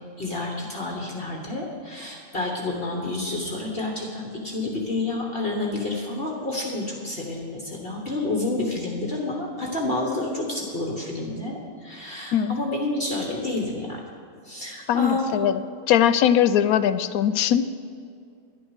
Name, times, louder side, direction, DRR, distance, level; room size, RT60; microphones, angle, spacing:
voice 1, 0.2-14.0 14.4-15.5, left 2 dB, 40° left, -1 dB, 1.5 m, -29 dB
voice 2, 14.9-17.7, left 9 dB, 80° left, 14 dB, 1.0 m, -21 dB
11.5 x 10.5 x 6.3 m, 2.3 s
omnidirectional pair, 1.5 m